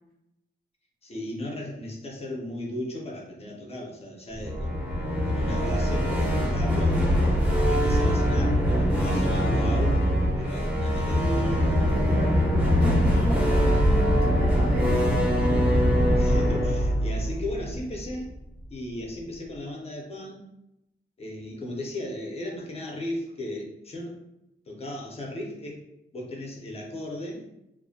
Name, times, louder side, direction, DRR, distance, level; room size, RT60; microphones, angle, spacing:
voice 1, 1.0-4.8 5.2-10.0 10.4-11.8 16.1-18.3 18.7-20.5 21.2-24.2 24.7-25.8 26.1-27.4, left 1 dB, 35° left, -1 dB, 0.5 m, -36 dB
sound 1, 4.4-18.4, equal, 10° right, 0.6 m, -23 dB
voice 2, 11.7-14.9, right 1 dB, 55° right, -7 dB, 1.3 m, -34 dB
2.4 x 2.1 x 2.6 m, 0.84 s
wide cardioid pair, 130°, 18 cm